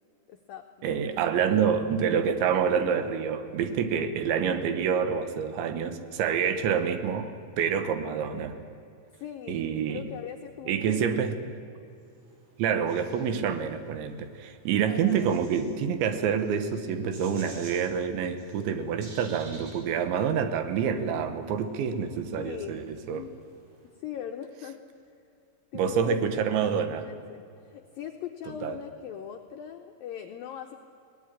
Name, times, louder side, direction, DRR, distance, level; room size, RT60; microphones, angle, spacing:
voice 1, 0.3-1.5 9.2-11.3 14.9-15.3 22.4-23.3 24.0-24.8 25.7-30.8, left 9 dB, 85° left, 4 dB, 2.0 m, -41 dB
voice 2, 0.8-7.3 7.6-8.6 9.5-10.0 10.7-11.4 12.6-23.3 25.7-27.0 28.6-28.8, right 7 dB, 75° right, 9 dB, 3.5 m, -27 dB
sound 1, 12.0-23.9, right 2 dB, 60° right, 6.6 m, -54 dB
21.5 x 18.5 x 10.0 m, 2.5 s
omnidirectional pair, 5.3 m